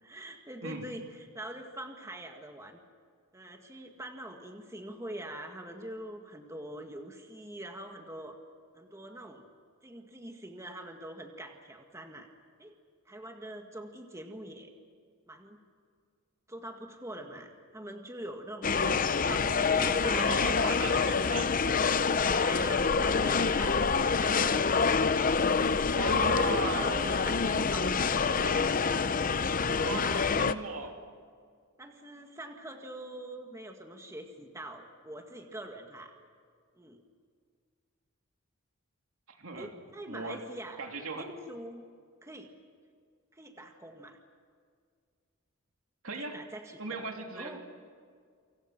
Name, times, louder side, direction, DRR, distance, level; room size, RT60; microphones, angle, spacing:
voice 1, 0.0-2.8 3.3-8.4 8.7-9.5 9.8-12.3 12.6-12.7 13.1-14.7 15.3-15.6 16.5-18.8 19.2-20.9 22.3-24.6 25.2-25.5 26.3-28.8 29.2-29.4 30.4-30.9 31.8-36.1 36.8-37.0 39.6-40.8 41.1-41.8 42.2-42.5 43.3-44.2 46.2-47.1 47.4-47.6, right 1 dB, 15° right, 3 dB, 1.9 m, -44 dB
sound 1, 18.6-30.5, left 5 dB, 40° left, 0.7 m, -26 dB
voice 2, 20.0-21.5 25.9-27.0 29.8-31.0 39.3-39.7 40.1-40.4 40.8-41.3 46.0-46.4 46.8-47.6, right 3 dB, 75° right, 3 dB, 3.1 m, -37 dB
28.5 x 26.5 x 6.0 m, 2.1 s
head